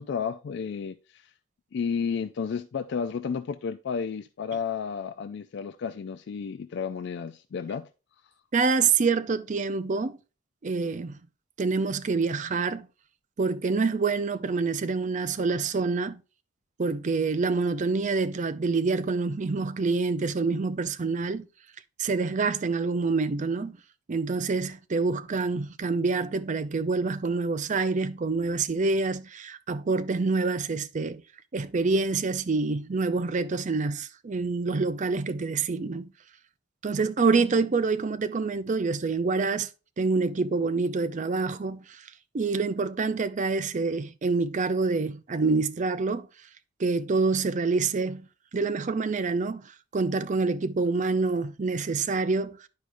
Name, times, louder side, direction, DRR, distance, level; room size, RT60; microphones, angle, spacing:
voice 1, 0.0-1.3 1.7-7.9 8.2-8.3, left 6 dB, 60° left, 0.3 m, -32 dB
voice 2, 8.5-10.2 10.6-11.2 11.6-12.9 13.4-16.2 16.8-21.5 22.0-23.8 24.1-31.2 31.5-36.1 36.8-39.7 40.0-42.1 42.3-46.3 46.8-48.3 48.5-49.6 49.9-52.7, right 4 dB, 40° right, 0.4 m, -26 dB
10.5 x 4.8 x 2.5 m
head